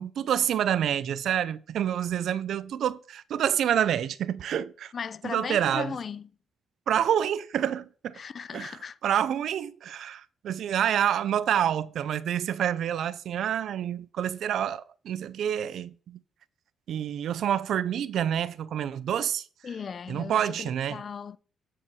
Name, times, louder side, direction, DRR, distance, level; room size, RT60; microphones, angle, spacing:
voice 1, 0.0-4.9 5.2-5.9 6.9-8.2 8.5-16.2 16.9-19.4 20.1-21.0, right 9 dB, 70° right, 0.5 m, -28 dB
voice 2, 4.9-6.3 8.1-9.0 19.6-21.4, left 6 dB, 45° left, 0.5 m, -37 dB
8.8 x 5.5 x 4.8 m
cardioid pair, 90°, 0 cm